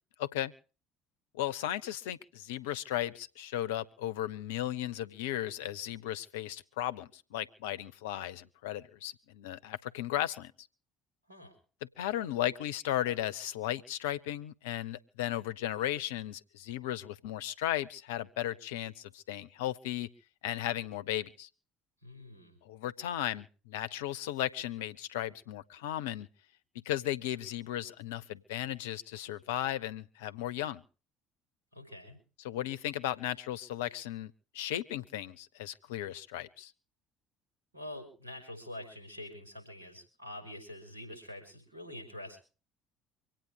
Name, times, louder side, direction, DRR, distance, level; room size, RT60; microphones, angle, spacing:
voice 1, 0.2-0.5 1.3-10.5 12.0-20.1 20.4-21.5 22.6-26.3 26.9-30.8 32.4-36.7, left 12 dB, 75° left, 15 dB, 0.7 m, -35 dB
voice 2, 22.0-22.6 31.7-32.2 37.7-42.4, left 1 dB, 85° right, 1 dB, 5.0 m, -46 dB
25.0 x 9.0 x 5.0 m, 0.36 s
figure-of-eight pair, 55°, 0 cm